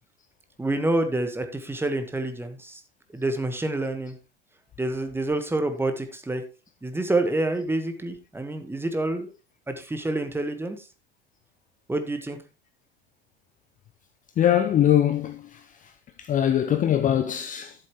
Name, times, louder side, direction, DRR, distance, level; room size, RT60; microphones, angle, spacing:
voice 1, 0.6-2.8 3.1-4.1 4.8-6.4 6.8-9.3 9.7-10.8 11.9-12.4, right 2 dB, 5° right, 1.4 m, -27 dB
voice 2, 14.4-15.4 16.2-17.7, left 10 dB, 25° left, 0.8 m, -22 dB
12.0 x 7.5 x 3.1 m
figure-of-eight pair, 80°, 30 cm